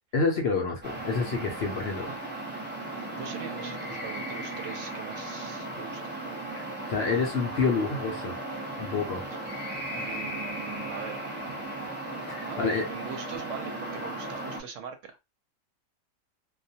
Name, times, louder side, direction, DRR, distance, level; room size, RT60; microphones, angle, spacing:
voice 1, 0.1-2.1 6.9-8.3 8.8-9.2 12.3-12.8, left 4 dB, 60° left, 0.7 m, -28 dB
sound 1, 0.8-14.6, right 1 dB, 15° right, 0.4 m, -36 dB
voice 2, 3.2-6.0 9.9-11.3 12.5-15.2, right 7 dB, 70° right, 0.9 m, -41 dB
2.3 x 2.1 x 2.6 m
omnidirectional pair, 1.4 m